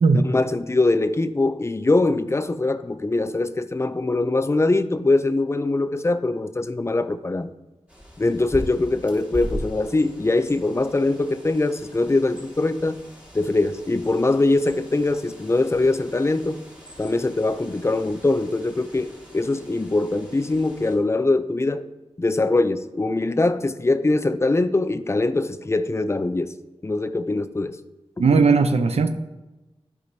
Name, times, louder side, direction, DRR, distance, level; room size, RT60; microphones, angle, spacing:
voice 1, 0.1-7.5 8.2-13.0 13.3-16.6 17.0-21.8 22.2-26.5 26.8-27.8, left 2 dB, 25° left, 11 dB, 0.5 m, -22 dB
Bird, 7.9-21.0, equal, 10° right, 1.9 m, -40 dB
voice 2, 28.2-29.1, right 4 dB, 80° right, 8 dB, 0.6 m, -17 dB
13.0 x 4.8 x 2.7 m, 1.1 s
wide cardioid pair, 75°, 11 cm